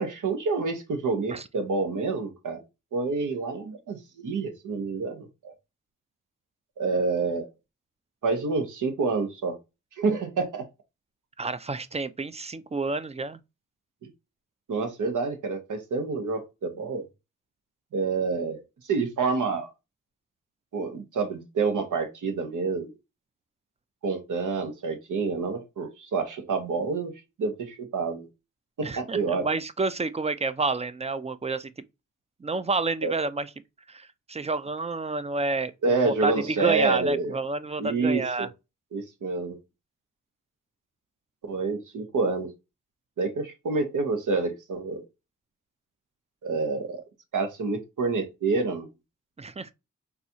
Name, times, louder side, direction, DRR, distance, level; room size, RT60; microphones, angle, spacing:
voice 1, 0.0-2.6 2.9-5.5 6.8-7.5 8.2-9.6 10.0-10.7 14.7-17.0 17.9-19.7 20.7-22.9 24.0-27.1 27.4-28.3 28.8-29.5 33.0-33.1 35.8-37.4 37.8-38.5 38.9-39.6 41.5-42.5 43.2-45.1 46.4-47.0 47.3-48.9, right 4 dB, 75° right, 0.9 m, -28 dB
voice 2, 11.4-13.4 28.8-31.7 32.4-33.5 33.9-38.5 49.4-49.7, right 3 dB, 20° right, 0.4 m, -29 dB
4.1 x 2.3 x 2.7 m
cardioid pair, 50°, 31 cm